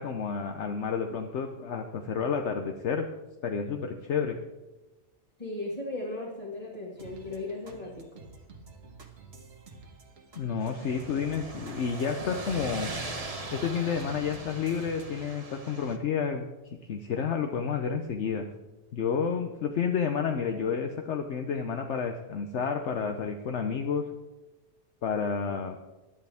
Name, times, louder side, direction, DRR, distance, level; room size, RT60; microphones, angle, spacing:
voice 1, 0.0-3.1 3.4-4.4 10.3-12.9 13.5-16.4 16.9-18.5 18.9-24.1 25.0-25.8, left 6 dB, 70° left, 5 dB, 1.1 m, -30 dB
voice 2, 5.4-8.2, left 2 dB, 30° left, -5 dB, 2.2 m, -37 dB
sound 1, 7.0-15.1, right 4 dB, 55° right, 1.6 m, -49 dB
sound 2, 10.6-16.0, right 2 dB, 30° right, 1.2 m, -40 dB
18.0 x 11.0 x 3.5 m, 1.1 s
omnidirectional pair, 1.3 m